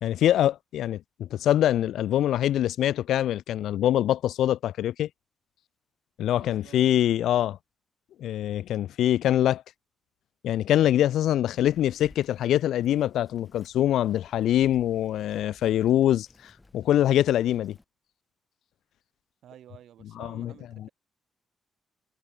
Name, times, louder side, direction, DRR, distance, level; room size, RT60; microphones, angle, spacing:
voice 1, 0.0-5.1 6.2-7.6 8.2-9.6 10.4-17.8 20.2-20.5 20.8-20.9, left 12 dB, 80° left, 0.4 m, -24 dB
voice 2, 6.4-6.8 19.4-20.9, right 11 dB, 75° right, 3.2 m, -51 dB
Bird vocalization bird call bird song, 11.6-17.8, left 2 dB, 20° left, 7.2 m, -57 dB
supercardioid pair, 65°, 0 cm